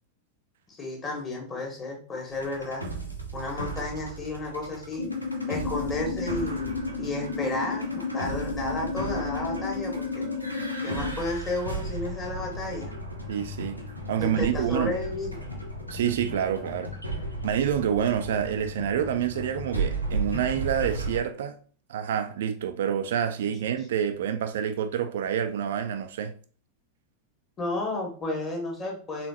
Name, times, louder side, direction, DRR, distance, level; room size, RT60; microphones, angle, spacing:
voice 1, 0.7-2.9 3.3-5.1 5.5-10.3 10.8-12.9 14.2-15.4 23.4-23.7 27.6-29.3, left 2 dB, 25° left, 1.8 m, -32 dB
sound 1, 2.3-21.2, right 2 dB, 90° right, 0.9 m, -35 dB
sound 2, 5.0-11.2, left 4 dB, 60° left, 0.7 m, -32 dB
voice 2, 13.3-13.8 14.1-14.9 15.9-16.9 17.4-21.6 21.9-26.3, right 9 dB, 60° right, 0.5 m, -27 dB
4.2 x 3.7 x 2.9 m
figure-of-eight pair, 90°, 0 cm